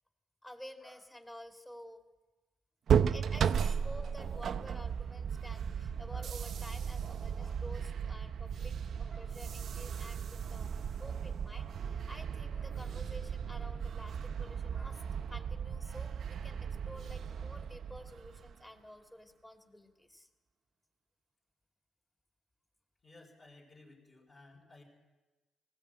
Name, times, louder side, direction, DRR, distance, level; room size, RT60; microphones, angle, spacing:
voice 1, 0.4-2.0 3.1-10.7 11.0-15.0 15.3-20.3, equal, 15° left, 5 dB, 2.4 m, -51 dB
sound 1, 2.9-18.6, right 7 dB, 60° right, 0.6 m, -35 dB
voice 2, 23.0-24.8, left 2 dB, 35° left, -6 dB, 4.9 m, -57 dB
19.0 x 15.5 x 9.0 m, 1.2 s
cardioid pair, 90°, 0 cm